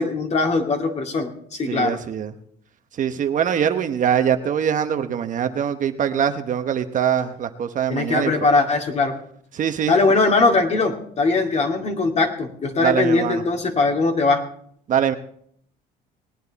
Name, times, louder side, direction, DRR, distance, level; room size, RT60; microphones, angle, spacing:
voice 1, 0.0-2.0 7.9-9.2 9.9-14.4, left 3 dB, 40° left, 4 dB, 2.3 m, -20 dB
voice 2, 1.7-2.3 3.0-8.3 9.5-9.9 12.8-13.4 14.9-15.1, right 8 dB, 50° right, 8 dB, 1.0 m, -23 dB
19.5 x 9.5 x 4.1 m, 0.64 s
cardioid pair, 110°, 17 cm